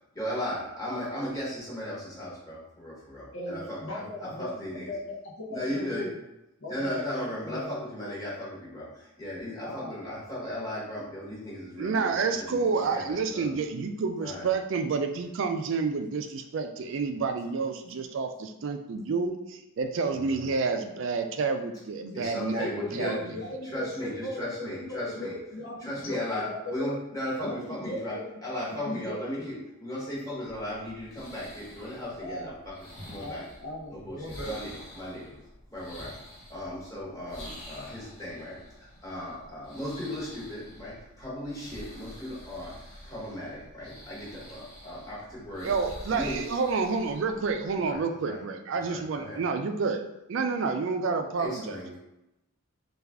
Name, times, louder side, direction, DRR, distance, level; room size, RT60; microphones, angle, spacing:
voice 1, 0.1-4.9 5.5-6.1 6.7-13.5 14.2-14.5 20.1-20.5 22.1-23.4 23.7-25.4 25.8-33.5 33.9-35.3 35.7-36.2 36.5-45.7 46.1-46.5 47.9-48.4 48.9-49.4 51.4-52.0, left 1 dB, 15° left, -7 dB, 1.1 m, -36 dB
voice 2, 3.3-4.5 4.8-6.1 6.6-7.7 9.6-10.0 22.6-24.5 24.9-27.0 27.4-28.3 28.5-29.5 32.2-32.5 33.2-34.6, left 1 dB, 65° left, -2 dB, 0.7 m, -37 dB
voice 3, 11.8-23.2 45.6-50.0 50.3-51.8, right 4 dB, 55° right, 6 dB, 0.3 m, -29 dB
sound 1, 30.4-48.0, equal, 80° left, 1.2 m, -48 dB
3.3 x 2.3 x 3.5 m, 0.91 s
head